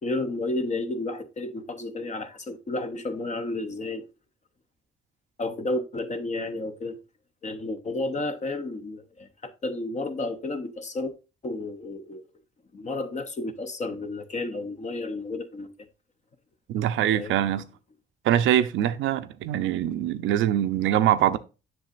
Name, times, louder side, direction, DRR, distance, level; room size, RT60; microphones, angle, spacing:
voice 1, 0.0-4.1 5.4-7.0 7.4-11.1 11.4-12.2 12.7-15.7 17.1-17.4, left 2 dB, 35° left, 0.8 m, -32 dB
voice 2, 16.7-17.6 18.2-21.4, right 11 dB, 80° right, 0.6 m, -23 dB
7.7 x 6.3 x 2.5 m
cardioid pair, 90°, 20 cm